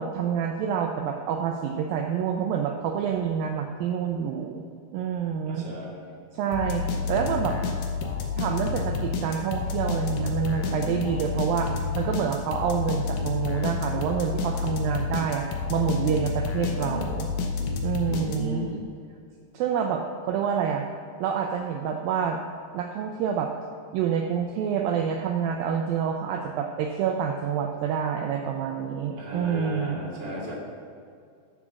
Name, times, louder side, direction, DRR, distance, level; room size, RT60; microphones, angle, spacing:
voice 1, 0.0-5.7 6.3-7.6 8.4-15.5 15.7-17.3 17.8-18.7 19.5-20.9 21.2-22.4 22.7-23.5 23.9-30.0, right 7 dB, 80° right, 3 dB, 2.1 m, -27 dB
voice 2, 5.5-6.0 18.0-18.8 29.2-30.5, left 1 dB, 15° right, -6 dB, 1.6 m, -35 dB
sound 1, 6.5-18.7, left 4 dB, 70° left, 2.5 m, -29 dB
9.8 x 7.0 x 6.2 m, 2.3 s
omnidirectional pair, 4.5 m